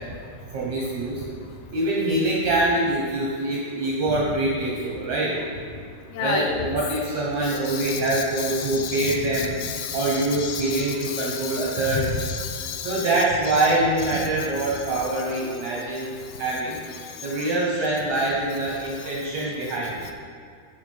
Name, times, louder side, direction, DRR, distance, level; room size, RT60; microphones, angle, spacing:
voice 1, 0.5-1.3 1.7-5.3 6.2-9.6 9.9-12.2 12.8-16.8 17.2-20.1, right 2 dB, 70° right, -4 dB, 1.7 m, -24 dB
voice 2, 6.1-6.8 7.5-13.1 13.5-13.7 14.1-14.3 15.1-15.2, left 6 dB, 80° left, 4 dB, 2.7 m, -31 dB
10.5 x 5.0 x 5.5 m, 2.3 s
omnidirectional pair, 4.5 m